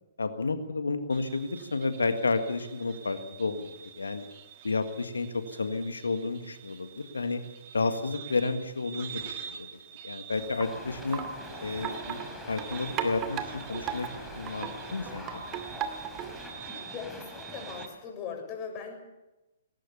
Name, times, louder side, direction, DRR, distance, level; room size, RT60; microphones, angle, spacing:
voice 1, 0.2-4.3 4.6-7.4 7.7-9.7 10.0-11.2 11.6-13.4 13.7-14.1 14.3-15.4, left 3 dB, 80° left, 8 dB, 1.7 m, -31 dB
sound 1, 1.1-17.9, right 9 dB, 45° right, 2.6 m, -47 dB
Wind chime, 10.3-16.5, right 8 dB, 30° right, 2.3 m, -38 dB
sound 2, 10.6-17.9, left 1 dB, ahead, 4.2 m, -44 dB
voice 2, 16.9-19.0, left 6 dB, 30° left, 2 dB, 6.8 m, -39 dB
20.0 x 19.0 x 7.0 m, 1.0 s
figure-of-eight pair, 120°, 0 cm